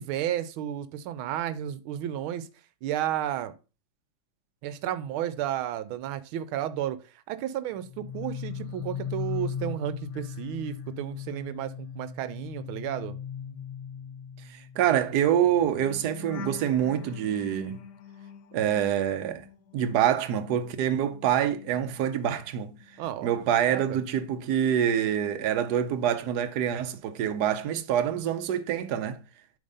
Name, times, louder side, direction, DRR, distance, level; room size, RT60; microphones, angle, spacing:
voice 1, 0.0-2.5 2.8-3.5 4.6-7.0 7.3-13.1 23.0-23.3 23.7-24.0, right 11 dB, 90° right, 1.5 m, -32 dB
sound 1, 7.8-20.1 20.4-22.5 22.8-23.1, left 8 dB, 65° left, 1.2 m, -40 dB
voice 2, 14.5-17.8 18.5-19.5 19.7-22.8 23.2-29.2, right 9 dB, 65° right, 1.1 m, -26 dB
8.7 x 3.5 x 5.4 m
omnidirectional pair, 2.3 m